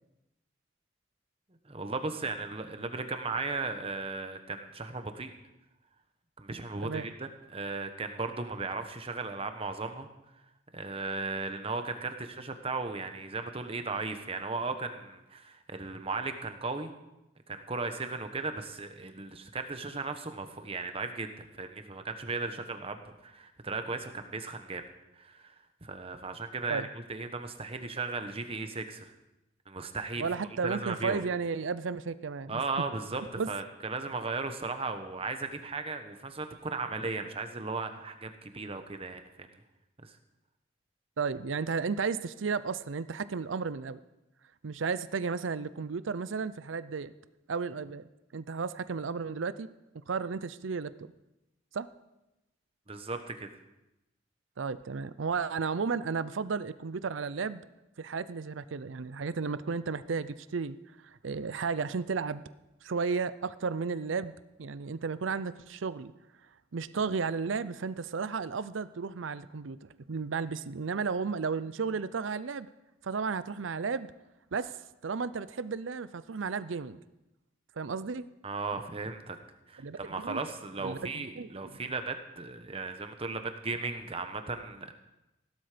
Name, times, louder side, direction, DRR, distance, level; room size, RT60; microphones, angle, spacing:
voice 1, 1.6-5.3 6.4-10.1 10.7-16.9 17.5-24.8 25.2-25.5 25.8-29.1 29.7-30.3 30.6-31.2 32.5-39.5 40.0-40.1 52.9-53.5 78.4-79.4 79.7-84.9, right 3 dB, 30° right, 7 dB, 1.1 m, -36 dB
voice 2, 30.2-32.6 33.4-33.5 41.2-44.0 44.6-47.1 47.5-49.7 49.9-50.9 51.7-51.9 54.6-57.6 58.0-60.8 61.0-62.4 62.8-64.3 64.6-66.1 66.7-72.7 73.0-74.1 74.5-74.8 75.0-77.0 77.8-78.2 79.8-80.4 80.8-81.7, right 5 dB, 80° right, 15 dB, 0.6 m, -33 dB
17.0 x 12.0 x 5.1 m, 0.94 s
head